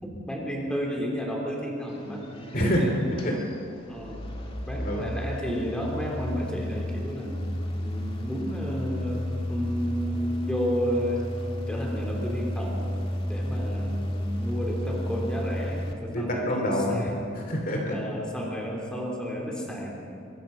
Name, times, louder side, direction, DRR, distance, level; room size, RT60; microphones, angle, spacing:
voice 1, 0.0-3.0 3.9-4.2 4.7-7.5 7.8-12.9 13.3-17.3 17.9-20.1, equal, 5° left, -2 dB, 3.6 m, -32 dB
sound 1, 1.9-15.9, equal, 30° left, 2.0 m, -33 dB
voice 2, 2.5-3.5 4.1-4.2 4.7-5.1 16.1-18.0, equal, 45° left, 1 dB, 2.6 m, -27 dB
23.5 x 20.5 x 5.5 m, 2.4 s
head